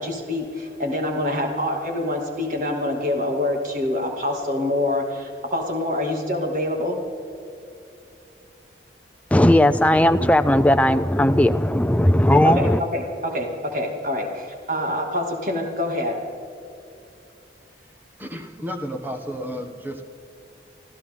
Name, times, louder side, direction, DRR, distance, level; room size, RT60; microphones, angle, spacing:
voice 1, 0.0-7.0 12.4-16.3, left 1 dB, 45° right, 1 dB, 2.4 m, -26 dB
voice 2, 9.3-12.8, left 1 dB, 10° left, 10 dB, 0.4 m, -17 dB
voice 3, 18.2-20.1, equal, 10° right, 5 dB, 1.2 m, -32 dB
25.0 x 15.0 x 3.8 m, 2.7 s
head